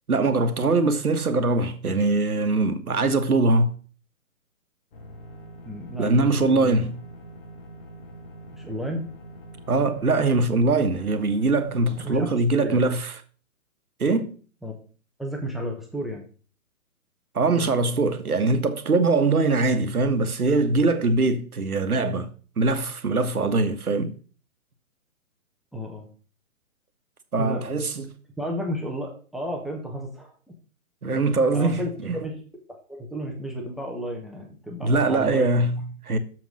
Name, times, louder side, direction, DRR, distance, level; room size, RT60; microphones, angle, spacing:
voice 1, 0.1-3.8 6.0-7.0 9.7-13.1 14.0-14.4 17.3-22.3 22.6-24.1 27.3-28.1 31.0-32.2 34.8-36.2, right 3 dB, 85° right, 1.5 m, -22 dB
sound 1, 4.9-12.3, right 1 dB, 40° left, 2.4 m, -44 dB
voice 2, 5.6-6.7 8.5-9.1 12.0-12.8 14.6-14.7 15.2-16.2 25.7-26.1 27.4-27.7 28.4-30.3 31.5-31.9 32.2-32.4 32.7-35.5, equal, ahead, 1.0 m, -32 dB
7.1 x 6.1 x 6.3 m
hypercardioid pair, 140°, 43 cm